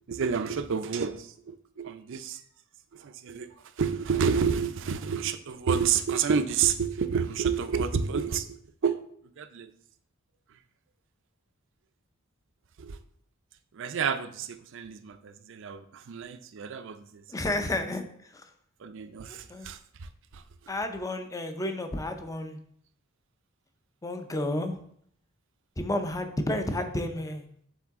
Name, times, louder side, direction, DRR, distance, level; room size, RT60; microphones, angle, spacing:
voice 1, 0.1-2.4 2.9-3.5 3.8-8.6 8.8-9.0 9.4-9.7 12.8-13.0 13.7-17.2 18.8-20.4, right 6 dB, 60° right, 0.5 m, -29 dB
voice 2, 17.3-18.0 18.3-18.4 19.5-19.7 20.7-22.6 24.0-24.8 25.8-27.5, left 1 dB, 15° left, 0.5 m, -31 dB
7.2 x 3.8 x 3.5 m
head